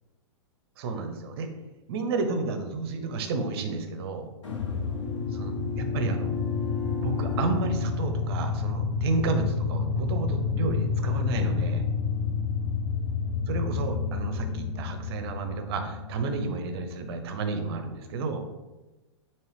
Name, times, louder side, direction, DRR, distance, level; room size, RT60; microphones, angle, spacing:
voice 1, 0.8-1.5 1.9-4.3 5.3-6.3 7.0-11.8 13.5-18.5, right 3 dB, 55° right, 7 dB, 0.7 m, -31 dB
sound 1, 4.4-16.7, left 5 dB, 90° left, 1.2 m, -29 dB
4.7 x 2.9 x 3.3 m, 1.1 s
hypercardioid pair, 125°, 15 cm